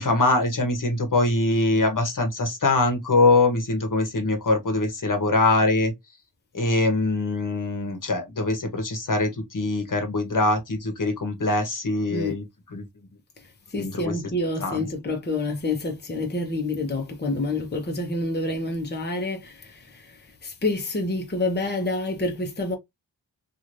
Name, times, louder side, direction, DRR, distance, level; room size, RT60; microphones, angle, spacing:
voice 1, 0.0-5.9 6.5-12.4 12.7-12.8 13.8-14.1 14.6-14.9, left 2 dB, 50° left, 1.1 m, -23 dB
voice 2, 13.4-22.8, left 2 dB, 25° left, 0.8 m, -28 dB
3.1 x 2.6 x 2.6 m
wide cardioid pair, 75°, 41 cm